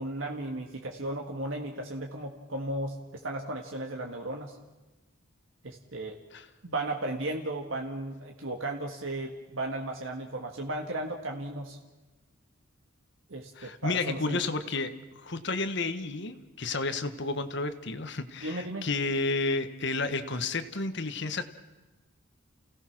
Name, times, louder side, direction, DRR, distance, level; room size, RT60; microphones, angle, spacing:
voice 1, 0.0-4.6 5.6-6.2 6.6-11.8 13.3-14.4 18.4-18.9, right 1 dB, 85° right, 1 dB, 1.9 m, -35 dB
voice 2, 13.5-21.4, left 3 dB, 60° left, 10 dB, 1.4 m, -31 dB
29.5 x 17.5 x 6.1 m, 1.2 s
head